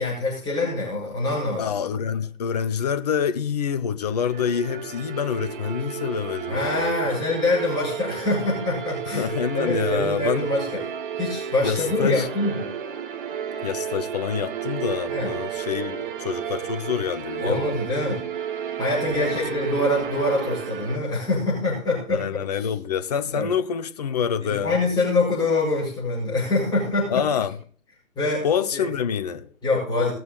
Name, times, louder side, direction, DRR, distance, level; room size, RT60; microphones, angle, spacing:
voice 1, 0.0-1.7 6.5-9.3 9.5-10.8 11.2-12.6 15.1-15.3 17.4-18.2 18.8-22.2 23.3-23.5 24.4-27.2 28.2-28.5 28.7-28.8 29.6-30.1, left 2 dB, 10° left, 5.4 m, -24 dB
voice 2, 1.6-6.9 9.1-10.5 11.6-12.3 13.6-17.8 19.1-19.4 19.8-19.9 22.1-24.8 27.1-27.5 28.4-29.5, left 7 dB, 30° left, 0.7 m, -27 dB
sound 1, 4.2-21.0, right 8 dB, 35° right, 1.2 m, -32 dB
19.0 x 6.9 x 4.0 m
figure-of-eight pair, 140°, 44 cm